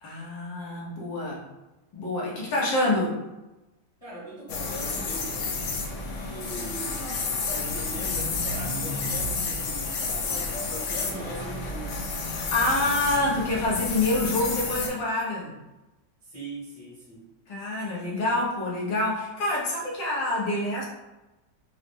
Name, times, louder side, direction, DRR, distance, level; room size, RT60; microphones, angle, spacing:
voice 1, 0.0-1.4 1.9-3.2 12.3-15.5 17.5-20.8, left 2 dB, 85° left, -5 dB, 1.7 m, -27 dB
voice 2, 4.0-5.5 5.8-7.0 7.4-12.0 16.2-17.3, right 1 dB, 25° left, -8 dB, 0.8 m, -40 dB
sound 1, 4.5-14.9, left 3 dB, 70° left, 0.7 m, -30 dB
4.6 x 2.0 x 3.3 m, 1.0 s
omnidirectional pair, 1.9 m